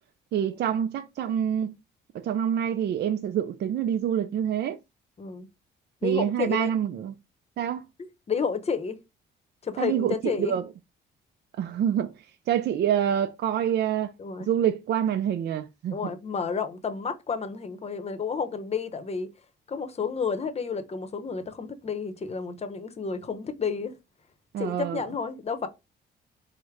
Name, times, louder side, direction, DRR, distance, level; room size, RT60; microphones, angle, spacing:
voice 1, 0.3-1.7 2.1-4.8 6.0-7.1 7.6-7.9 9.8-10.6 11.6-12.1 12.5-14.1 14.5-16.1 24.5-25.0, right 9 dB, 55° right, 0.4 m, -26 dB
voice 2, 5.2-5.5 6.0-6.8 8.3-9.0 9.6-10.6 14.2-14.5 15.9-19.3 19.7-24.0 24.6-25.7, left 5 dB, 30° left, 0.8 m, -31 dB
4.6 x 2.1 x 3.5 m
cardioid pair, 90°, 20 cm